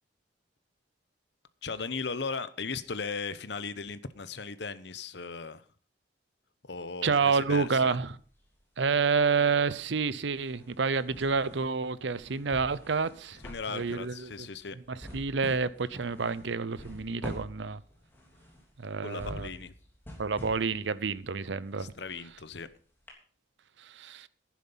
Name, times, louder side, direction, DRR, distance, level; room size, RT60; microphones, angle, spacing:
voice 1, 1.6-5.6 6.7-8.0 13.4-14.8 19.0-19.7 21.8-22.7, left 4 dB, 65° left, 0.9 m, -37 dB
voice 2, 7.0-8.2 8.8-13.4 13.7-14.3 15.1-17.8 18.8-19.5 20.2-21.9 23.8-24.3, right 5 dB, 75° right, 0.7 m, -29 dB
sound 1, 7.7-8.6 8.9-22.7 23.1-23.2, equal, 10° left, 3.2 m, -47 dB
11.0 x 10.5 x 5.6 m
head